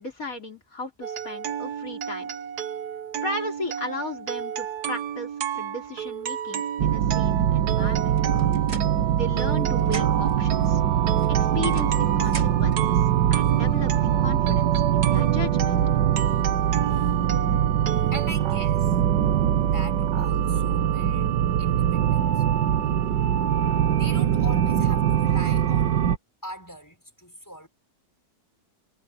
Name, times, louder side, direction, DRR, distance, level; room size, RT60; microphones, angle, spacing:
voice 1, 0.0-2.3 3.2-5.3 5.6-8.2 9.1-10.8 11.5-13.0 13.3-15.8, left 2 dB, 50° left, 4.3 m, -35 dB
Music Box Playing Berceuse - J Brahms, 1.0-18.3, right 9 dB, 65° right, 1.5 m, -32 dB
sound 1, 6.8-26.2, right 10 dB, 85° right, 1.7 m, -22 dB
sound 2, 8.2-9.5 9.8-10.4 11.2-12.8, right 2 dB, 35° right, 3.5 m, -42 dB
voice 2, 12.2-12.6 16.9-17.1 18.1-19.0 19.7-21.3 21.6-22.4 23.9-26.0 26.4-27.7, equal, 10° left, 5.6 m, -41 dB
omnidirectional pair, 1.9 m